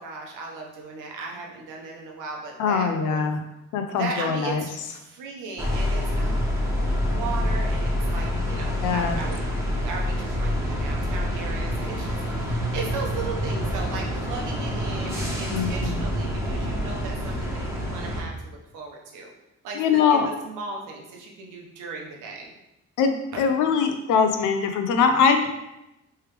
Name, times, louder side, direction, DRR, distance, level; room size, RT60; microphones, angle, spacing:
voice 1, 0.0-3.3 4.0-6.4 6.9-9.4 9.8-19.3 19.6-22.5 23.3-23.5, right 4 dB, 85° right, -1 dB, 0.9 m, -36 dB
voice 2, 2.6-3.4 3.7-4.6 8.8-9.2 15.5-16.1 19.8-20.3 23.0-25.5, left 6 dB, 90° left, 6 dB, 0.6 m, -22 dB
sound 1, 5.6-18.2, equal, 10° right, 1.0 m, -27 dB
3.3 x 3.3 x 3.3 m, 0.92 s
cardioid pair, 90°, 30 cm